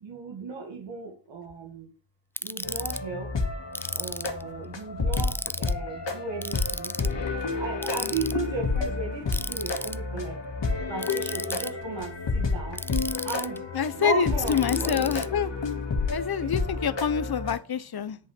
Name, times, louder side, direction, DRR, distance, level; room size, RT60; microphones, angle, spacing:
voice 1, 0.0-1.9 2.4-3.3 3.9-6.9 7.6-10.4 10.9-12.8 13.2-13.6 14.0-15.1 16.4-16.5, right 4 dB, 85° right, 2.1 m, -35 dB
Ratchet pawl, 2.4-3.0 3.7-4.4 5.1-5.7 6.4-7.1 7.8-8.3 9.3-10.0 11.0-11.7 12.8-13.6 14.5-15.3, left 1 dB, 5° left, 0.4 m, -34 dB
sound 1, 2.6-17.6, left 4 dB, 80° left, 2.3 m, -30 dB
voice 2, 13.7-15.5 16.1-18.2, left 8 dB, 60° left, 1.0 m, -26 dB
10.5 x 5.7 x 6.1 m
cardioid pair, 50°, 43 cm